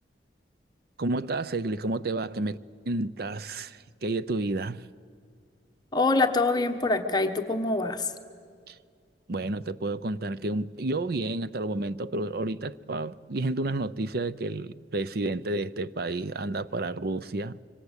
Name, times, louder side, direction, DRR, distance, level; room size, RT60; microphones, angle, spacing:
voice 1, 1.0-2.6 2.9-4.8 8.7-8.8 9.3-17.6, right 2 dB, 60° right, 0.6 m, -30 dB
voice 2, 5.9-8.1, left 3 dB, 25° left, 1.2 m, -25 dB
25.0 x 25.0 x 8.2 m
head